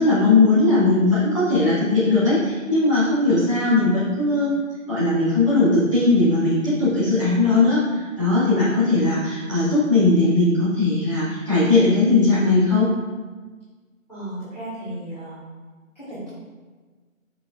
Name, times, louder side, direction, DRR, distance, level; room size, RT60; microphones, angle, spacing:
voice 1, 0.0-4.5 4.9-12.9, left 3 dB, 20° right, -13 dB, 2.1 m, -19 dB
voice 2, 14.1-15.4 16.0-16.3, right 1 dB, 30° left, -14 dB, 1.8 m, -34 dB
7.7 x 6.2 x 2.5 m, 1.4 s
figure-of-eight pair, 170°, 42 cm